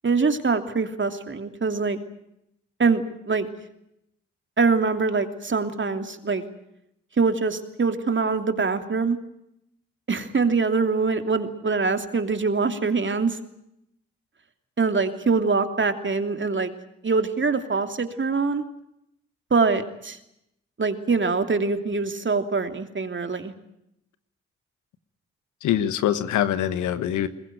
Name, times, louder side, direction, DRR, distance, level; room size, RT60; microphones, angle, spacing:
voice 1, 0.0-2.0 2.8-3.5 4.6-6.4 7.2-9.2 10.1-13.4 14.8-16.7 17.0-18.6 19.5-20.2 20.8-23.5, right 4 dB, 40° right, 7 dB, 2.9 m, -24 dB
voice 2, 25.6-27.3, left 11 dB, 80° left, 13 dB, 1.4 m, -24 dB
21.5 x 20.5 x 9.2 m, 0.80 s
hypercardioid pair, 40°, 30 cm